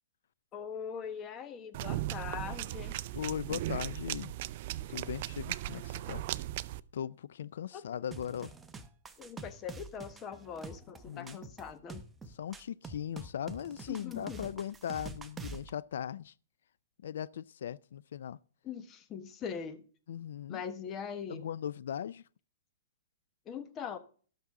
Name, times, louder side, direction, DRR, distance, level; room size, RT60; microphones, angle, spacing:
voice 1, 0.5-3.0 7.7-7.8 9.2-12.0 13.9-14.4 18.6-19.8 20.5-21.4 23.5-24.0, left 7 dB, 20° left, 1.2 m, -41 dB
sound 1, 1.7-6.8, right 15 dB, 45° right, 0.4 m, -37 dB
voice 2, 3.1-4.3 4.9-6.2 6.9-8.5 11.0-11.4 12.3-16.3 17.0-18.4 20.1-20.6 21.3-22.2, left 9 dB, 70° left, 0.4 m, -39 dB
sound 2, 8.1-15.7, right 3 dB, 10° right, 0.8 m, -46 dB
18.0 x 6.0 x 3.7 m
hypercardioid pair, 155°, 0 cm